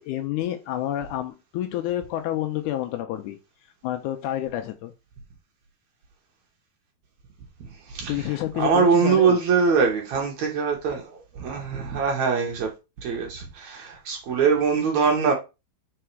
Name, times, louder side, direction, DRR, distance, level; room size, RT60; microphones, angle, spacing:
voice 1, 0.0-3.4 3.8-4.9 8.1-9.4, left 13 dB, 85° left, 1.7 m, -29 dB
voice 2, 7.9-12.7 13.0-15.3, right 5 dB, 60° right, 2.2 m, -23 dB
4.9 x 4.7 x 4.5 m
omnidirectional pair, 4.2 m